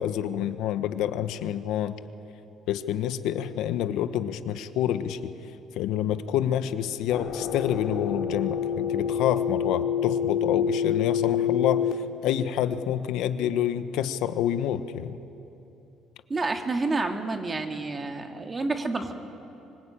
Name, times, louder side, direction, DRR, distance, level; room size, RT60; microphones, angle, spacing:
voice 1, 0.0-1.9 2.7-5.3 5.8-12.0 12.2-15.2, left 10 dB, 80° left, 11 dB, 1.1 m, -28 dB
sound 1, 7.1-11.9, left 8 dB, 65° left, 2.4 m, -27 dB
voice 2, 16.3-19.1, right 3 dB, 25° right, 4 dB, 2.2 m, -29 dB
25.0 x 23.5 x 8.9 m, 2.8 s
cardioid pair, 125°, 0 cm